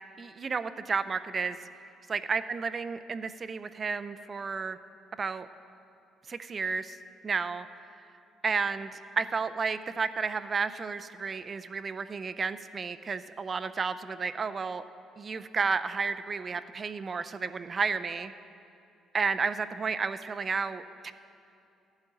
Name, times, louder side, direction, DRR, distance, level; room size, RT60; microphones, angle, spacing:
voice 1, 0.2-1.6 2.1-4.8 5.2-5.5 6.3-7.0 7.2-7.7 8.0-8.1 8.4-14.8 15.2-18.3 19.1-21.1, right 5 dB, 30° right, 12 dB, 0.4 m, -32 dB
14.5 x 11.0 x 3.9 m, 2.6 s
cardioid pair, 125°, 0 cm